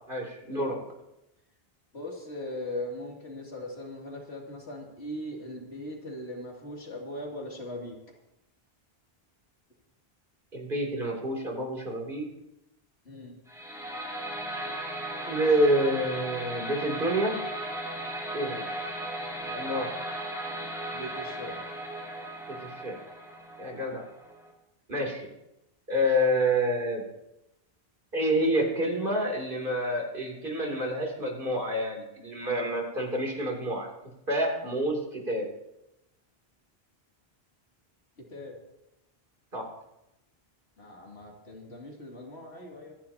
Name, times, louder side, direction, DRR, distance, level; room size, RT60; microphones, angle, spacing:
voice 1, 0.1-0.8 10.5-12.3 15.3-17.4 18.3-18.6 19.6-19.9 22.6-23.0 23.6-24.0 24.9-25.3 25.9-27.0 28.1-33.9 34.3-35.4 39.5-39.7, equal, 55° right, 0 dB, 3.2 m, -28 dB
voice 2, 1.9-8.0 13.0-13.4 18.5-18.7 19.4-19.7 20.9-21.6 38.3-38.5 40.8-42.9, left 1 dB, 90° left, -1 dB, 3.0 m, -39 dB
sound 1, 13.5-24.5, right 1 dB, 5° right, 2.6 m, -36 dB
25.5 x 10.5 x 2.9 m, 0.90 s
omnidirectional pair, 1.1 m